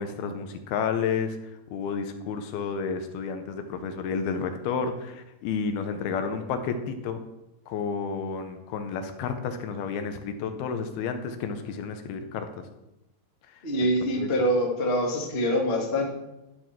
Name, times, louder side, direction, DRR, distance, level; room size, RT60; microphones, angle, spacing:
voice 1, 0.0-7.2 7.7-12.7 13.5-14.3, left 6 dB, 80° left, 7 dB, 2.6 m, -31 dB
voice 2, 13.6-16.1, equal, 50° left, -1 dB, 0.6 m, -25 dB
11.5 x 5.0 x 5.9 m, 0.95 s
omnidirectional pair, 4.6 m